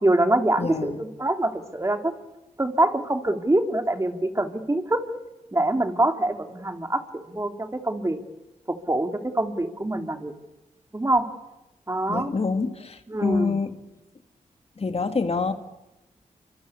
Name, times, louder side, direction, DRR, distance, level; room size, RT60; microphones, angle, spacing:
voice 1, 0.0-2.1 2.6-5.1 5.5-7.0 7.3-8.2 8.7-10.3 10.9-11.3 11.9-12.3 13.1-13.6, right 1 dB, 20° right, 6 dB, 3.2 m, -24 dB
voice 2, 0.6-1.0 12.1-13.7 14.8-15.5, left 4 dB, 45° left, 8 dB, 2.3 m, -26 dB
27.0 x 25.5 x 8.5 m, 0.98 s
cardioid pair, 75°, 14 cm